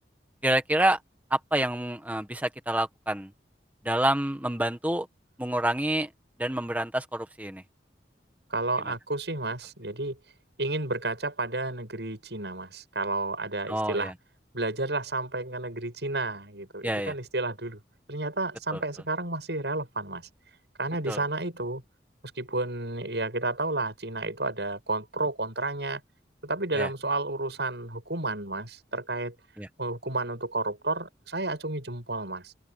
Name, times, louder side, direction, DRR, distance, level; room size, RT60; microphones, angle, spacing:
voice 1, 0.4-1.0 1.3-3.3 3.8-5.1 5.4-6.1 6.4-7.6 13.7-14.1 16.8-17.1 18.7-18.8 21.1-21.2 26.7-26.9 29.6-29.7, right 1 dB, 10° right, 1.5 m, -27 dB
voice 2, 8.5-10.2 10.6-14.1 14.5-17.8 18.1-20.3 20.8-21.8 22.4-26.0 26.4-29.3 29.8-32.5, right 2 dB, 75° right, 7.6 m, -31 dB
head